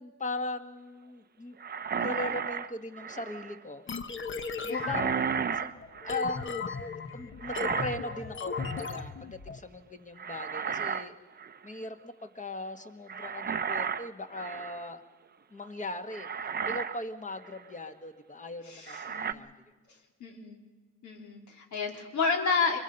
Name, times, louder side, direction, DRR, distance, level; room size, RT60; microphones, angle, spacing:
voice 1, 0.0-1.6 1.9-3.8 4.6-5.7 6.0-11.2 11.6-15.0 15.5-16.3 16.6-19.5, left 2 dB, 25° left, 7 dB, 1.7 m, -39 dB
sound 1, 1.6-3.6 4.7-6.5 7.4-8.2 8.5-9.0 10.2-11.1 11.4-11.6 13.1-14.9 15.6-15.7 16.1-17.0 17.4-17.6 18.9-19.3, right 6 dB, 30° right, 0.7 m, -34 dB
sound 2, 3.9-9.6, left 5 dB, 40° left, 1.2 m, -37 dB
voice 2, 18.7-19.3 20.2-20.6 21.0-22.8, left 4 dB, 70° left, 1 dB, 3.7 m, -31 dB
25.0 x 22.5 x 5.5 m, 1.4 s
cardioid pair, 90°, 30 cm